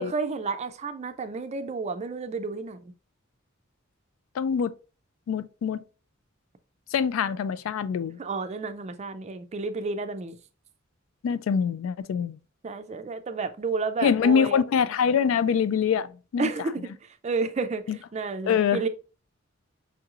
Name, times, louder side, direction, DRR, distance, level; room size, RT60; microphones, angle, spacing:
voice 1, 0.0-2.8 8.2-10.4 12.6-14.6 16.4-16.9 17.2-17.8 18.1-18.9, right 4 dB, 35° right, 0.4 m, -31 dB
voice 2, 4.4-4.7 5.3-5.8 6.9-8.2 11.2-12.4 14.0-16.5 17.9-18.0 18.5-18.8, left 7 dB, 75° left, 0.3 m, -24 dB
5.5 x 3.0 x 2.4 m
head